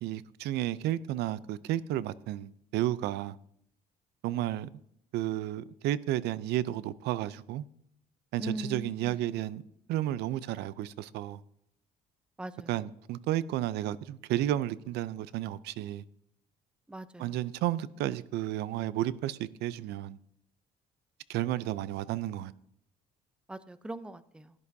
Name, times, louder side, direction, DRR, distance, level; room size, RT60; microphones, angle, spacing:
voice 1, 0.0-3.4 4.2-4.7 5.1-7.6 8.3-9.6 9.9-11.4 12.7-16.0 17.2-20.2 21.3-22.5, right 13 dB, 80° right, 0.5 m, -32 dB
voice 2, 8.4-9.2 12.4-12.7 16.9-17.3 23.5-24.5, right 1 dB, 5° right, 0.6 m, -40 dB
17.0 x 11.0 x 2.7 m
cardioid pair, 110°, 17 cm